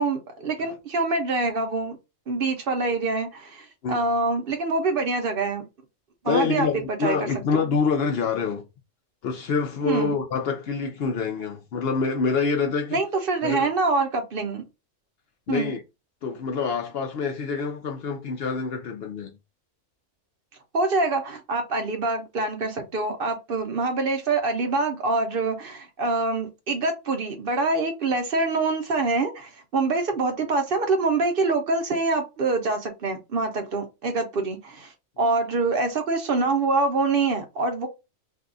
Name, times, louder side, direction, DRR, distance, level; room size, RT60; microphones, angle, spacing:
voice 1, 0.0-2.0 2.3-5.6 6.2-6.7 7.0-7.2 7.5-7.7 9.9-10.1 12.9-14.6 15.5-15.7 20.7-37.9, right 3 dB, 55° right, 0.7 m, -25 dB
voice 2, 6.2-8.6 9.2-13.0 13.4-13.7 15.5-15.8 16.2-19.3, left 5 dB, 60° left, 0.7 m, -26 dB
2.6 x 2.3 x 3.7 m
omnidirectional pair, 1.3 m